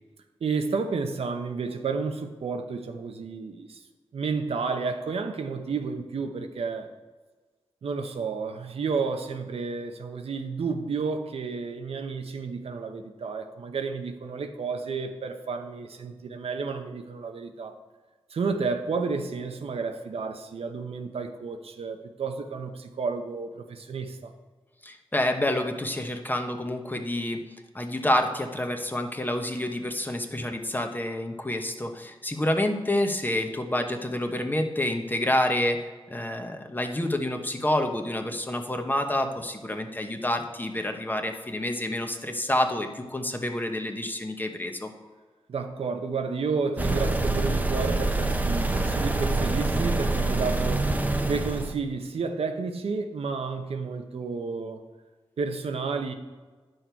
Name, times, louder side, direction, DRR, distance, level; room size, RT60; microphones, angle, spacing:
voice 1, 0.4-3.8 4.1-6.9 7.8-17.8 18.3-24.3 45.5-50.9 51.3-54.8 55.4-56.1, right 4 dB, 75° right, 6 dB, 0.8 m, -31 dB
voice 2, 24.8-27.4 27.7-44.9, left 1 dB, 20° left, 5 dB, 1.0 m, -28 dB
sound 1, 46.8-51.7, right 2 dB, 15° right, 0.8 m, -26 dB
10.0 x 6.5 x 4.5 m, 1.3 s
wide cardioid pair, 75°, 10 cm